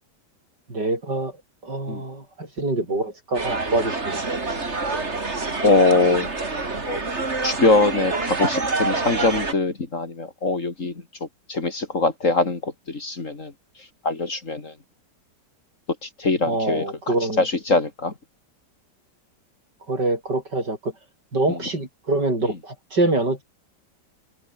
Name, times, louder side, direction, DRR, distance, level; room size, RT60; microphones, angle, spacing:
voice 1, 0.7-1.3 1.6-4.2 16.5-17.4 19.9-20.9 21.3-23.4, right 2 dB, 75° right, 8.1 m, -25 dB
sound 1, 3.3-9.5, right 3 dB, 40° right, 3.2 m, -27 dB
voice 2, 5.6-6.3 6.9-7.0 7.4-10.9 11.5-13.5 14.0-14.7 16.0-18.1 21.5-21.6, left 3 dB, 45° left, 3.0 m, -22 dB
omnidirectional pair, 1.9 m